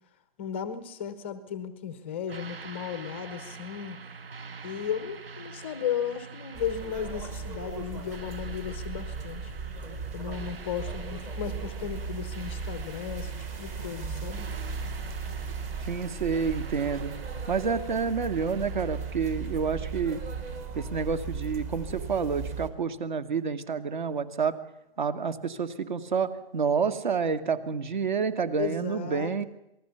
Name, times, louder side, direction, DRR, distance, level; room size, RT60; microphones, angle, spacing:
voice 1, 0.4-4.0 4.6-9.5 10.1-14.5 28.6-29.4, left 8 dB, 10° left, 12 dB, 0.8 m, -35 dB
sound 1, 2.3-20.6, right 5 dB, 65° right, 2.2 m, -47 dB
sound 2, 6.5-22.7, right 4 dB, 15° right, 1.3 m, -36 dB
voice 2, 15.9-17.1 17.5-20.2 20.7-24.6 25.0-29.4, right 6 dB, 50° right, 11 dB, 2.2 m, -29 dB
27.0 x 19.5 x 7.0 m, 0.83 s
hypercardioid pair, 165°, 31 cm